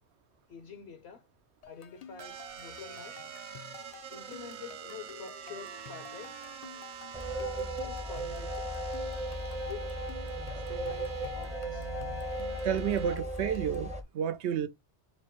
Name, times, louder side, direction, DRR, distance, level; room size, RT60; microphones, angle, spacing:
voice 1, 0.5-1.3 1.7-3.2 4.1-6.5 7.3-8.7 9.6-10.0 10.7-11.9, left 7 dB, 70° left, 0.9 m, -47 dB
sound 1, 1.6-13.9, left 9 dB, 55° left, 0.4 m, -52 dB
sound 2, 2.2-13.2, right 7 dB, 55° right, 0.6 m, -46 dB
sound 3, 7.1-14.0, right 1 dB, 10° right, 0.5 m, -36 dB
voice 2, 12.6-14.7, right 9 dB, 80° right, 0.9 m, -31 dB
4.4 x 2.0 x 4.3 m
omnidirectional pair, 1.1 m